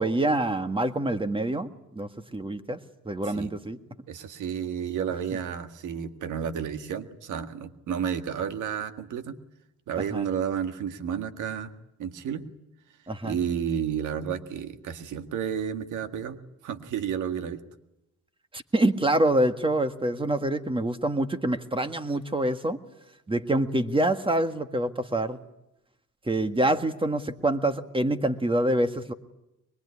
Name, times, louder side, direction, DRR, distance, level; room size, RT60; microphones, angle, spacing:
voice 1, 0.0-2.8 3.1-3.8 10.1-10.3 13.1-13.4 18.5-22.8 23.3-25.4 26.3-29.1, right 1 dB, 15° right, 9 dB, 1.7 m, -26 dB
voice 2, 4.1-9.4 9.9-11.7 12.0-12.4 13.2-16.4 16.6-17.6, right 8 dB, 80° right, 8 dB, 1.9 m, -31 dB
23.5 x 21.5 x 9.7 m, 0.88 s
cardioid pair, 90°, 30 cm